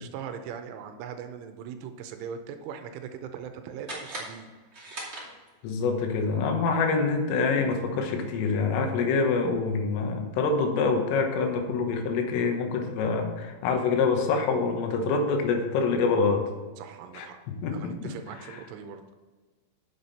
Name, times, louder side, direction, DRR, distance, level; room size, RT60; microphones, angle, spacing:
voice 1, 0.0-4.5 5.0-5.2 16.8-17.4 17.7-19.2, right 7 dB, 80° right, 7 dB, 3.1 m, -40 dB
sound 1, 3.8-5.8, right 1 dB, 60° right, 0.6 m, -40 dB
voice 2, 5.6-16.5 17.1-18.1 18.4-18.6, left 4 dB, 80° left, 4 dB, 3.8 m, -26 dB
9.4 x 7.2 x 4.1 m, 1.3 s
omnidirectional pair, 5.8 m